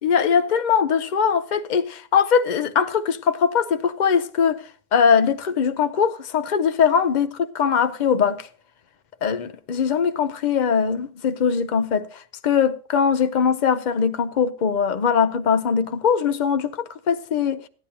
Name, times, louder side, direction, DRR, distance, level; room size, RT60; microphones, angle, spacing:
voice 1, 0.0-4.6 4.9-8.5 9.2-17.7, left 7 dB, 75° left, 0.4 m, -21 dB
16.0 x 10.0 x 2.8 m
omnidirectional pair, 1.6 m